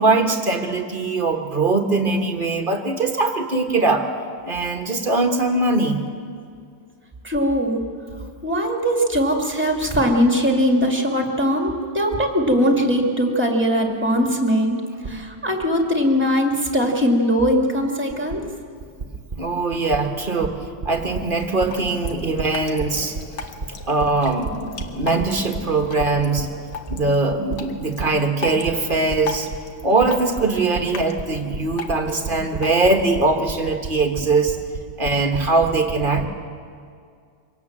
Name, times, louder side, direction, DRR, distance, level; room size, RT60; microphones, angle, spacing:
voice 1, 0.0-4.1 4.4-6.0 19.4-23.2 23.9-26.5 26.9-29.5 29.8-34.6 35.0-36.2, right 3 dB, 30° right, 5 dB, 1.4 m, -21 dB
voice 2, 7.2-7.8 8.4-18.4, equal, 5° right, 2 dB, 2.3 m, -20 dB
Drip, 21.4-33.4, left 5 dB, 65° left, 1.9 m, -37 dB
24.5 x 17.5 x 7.4 m, 2.2 s
omnidirectional pair, 2.0 m